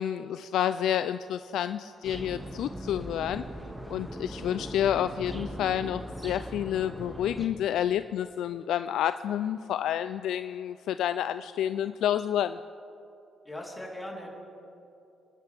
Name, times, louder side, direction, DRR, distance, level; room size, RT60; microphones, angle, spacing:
voice 1, 0.0-3.4 3.9-12.6, left 10 dB, 80° left, 12 dB, 0.3 m, -29 dB
sound 1, 2.0-7.5, equal, 10° right, 1.9 m, -39 dB
voice 2, 13.5-14.3, left 1 dB, 10° left, -2 dB, 3.5 m, -39 dB
29.5 x 11.5 x 3.4 m, 2.7 s
cardioid pair, 90°, 0 cm